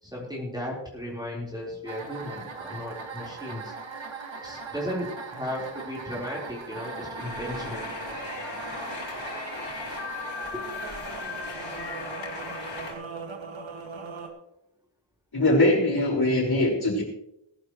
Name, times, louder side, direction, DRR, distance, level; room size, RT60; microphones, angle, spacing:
voice 1, 0.0-3.7 4.4-7.9 9.9-10.0 10.5-10.6, equal, 10° right, -4 dB, 4.1 m, -35 dB
sound 1, 1.9-14.3, right 4 dB, 75° right, 2.0 m, -39 dB
sound 2, 7.2-12.9, left 3 dB, 70° left, 4.0 m, -37 dB
voice 2, 15.3-17.0, left 1 dB, 50° left, -2 dB, 5.2 m, -22 dB
19.5 x 11.5 x 3.1 m, 0.81 s
wide cardioid pair, 115°, 46 cm